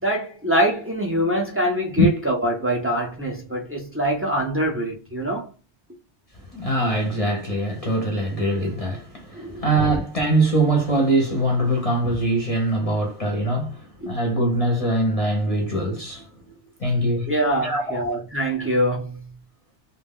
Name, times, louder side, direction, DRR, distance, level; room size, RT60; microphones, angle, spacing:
voice 1, 0.0-5.5 9.4-9.6 14.0-14.1 17.3-19.2, right 1 dB, 20° right, 0.4 m, -24 dB
voice 2, 6.5-16.3 16.8-17.3 17.6-18.2, right 1 dB, 40° left, 0.6 m, -22 dB
2.2 x 2.0 x 3.6 m
omnidirectional pair, 1.2 m